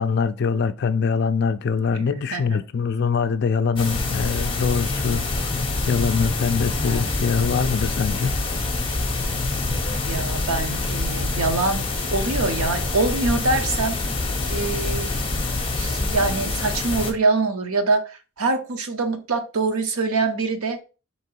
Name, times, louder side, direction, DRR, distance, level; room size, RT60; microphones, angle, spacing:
voice 1, 0.0-5.3 5.9-8.4, left 5 dB, 50° left, 0.3 m, -23 dB
voice 2, 1.9-2.6 10.0-11.9 12.1-14.0 14.5-15.1 15.8-18.1 18.4-20.8, right 3 dB, 80° right, 0.8 m, -24 dB
sound 1, 3.8-17.1, left 3 dB, 25° left, 0.7 m, -26 dB
3.7 x 2.9 x 4.4 m
head